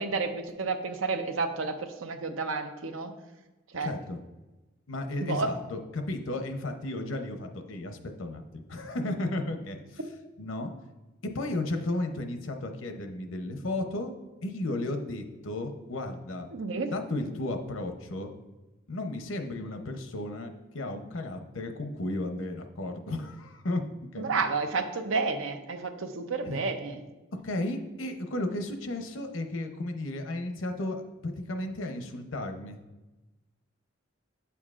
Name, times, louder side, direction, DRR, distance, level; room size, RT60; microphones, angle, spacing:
voice 1, 0.0-3.1 3.7-3.9 5.2-5.5 16.5-16.9 24.2-27.0, right 4 dB, 85° right, 7 dB, 0.7 m, -31 dB
voice 2, 3.8-4.2 4.9-10.0 10.4-10.7 11.3-14.1 14.4-16.5 16.9-18.3 18.9-23.8 24.1-24.3 26.4-26.6 27.4-32.8, left 2 dB, 85° left, 5 dB, 0.8 m, -34 dB
8.8 x 7.0 x 2.4 m, 1.1 s
head